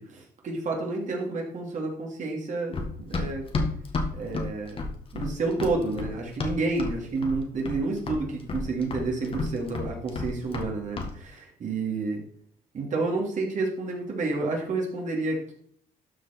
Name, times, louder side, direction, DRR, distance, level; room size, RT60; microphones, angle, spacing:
voice 1, 0.0-3.4 4.1-4.8 5.1-12.2 12.7-15.5, right 3 dB, 45° right, -1 dB, 2.7 m, -30 dB
Run, 2.7-7.0 7.2-7.8 8.1-10.7 11.0-11.1, left 3 dB, 35° left, 1.7 m, -31 dB
12.5 x 4.8 x 4.5 m, 0.62 s
cardioid pair, 110°, 17 cm